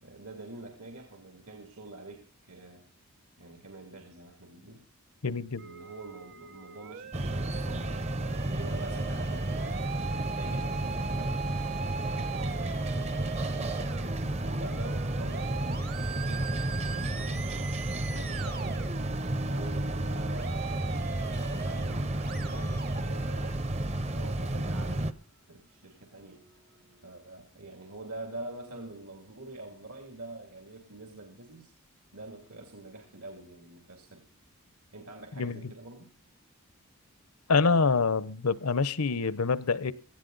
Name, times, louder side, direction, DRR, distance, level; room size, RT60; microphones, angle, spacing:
voice 1, 0.0-2.9 3.4-4.8 5.6-8.2 8.5-11.5 12.1-14.0 14.4-17.7 18.1-18.9 19.4-23.8 24.1-25.1 25.5-26.4 27.0-31.7 32.1-34.2 34.9-36.1, right 2 dB, 80° right, 2.6 m, -46 dB
voice 2, 5.2-5.7 35.4-35.7 37.5-39.9, left 4 dB, 80° left, 0.8 m, -26 dB
Musical instrument, 5.6-23.5, right 6 dB, 45° right, 1.0 m, -41 dB
sound 1, 7.1-25.1, right 1 dB, 30° right, 0.7 m, -32 dB
sound 2, 25.1-27.0, equal, 60° right, 2.5 m, -55 dB
18.0 x 14.5 x 4.0 m
head